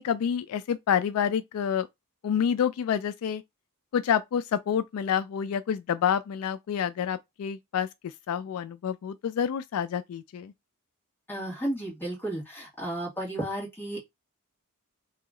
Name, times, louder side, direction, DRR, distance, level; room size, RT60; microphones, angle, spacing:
voice 1, 0.0-1.9 2.2-3.4 3.9-7.9 8.3-10.5, left 8 dB, 75° left, 0.3 m, -28 dB
voice 2, 11.3-14.0, right 1 dB, 10° left, 1.7 m, -33 dB
3.0 x 2.8 x 3.6 m
head